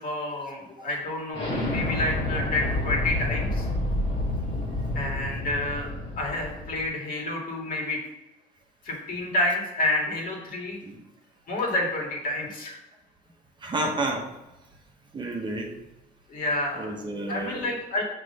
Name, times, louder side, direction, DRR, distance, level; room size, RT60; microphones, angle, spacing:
voice 1, 0.0-3.7 4.9-5.9 6.2-8.0 8.8-10.8 11.5-12.8 16.3-16.9 17.3-18.0, left 1 dB, 55° left, -1 dB, 1.9 m, -29 dB
Explosion, 1.3-6.9, left 1 dB, 40° left, 1.8 m, -29 dB
voice 2, 10.5-11.0 13.6-14.3 15.1-15.7 16.8-17.6, right 2 dB, 25° right, 1 dB, 1.0 m, -31 dB
6.0 x 3.3 x 5.5 m, 1.0 s
cardioid pair, 110°, 17 cm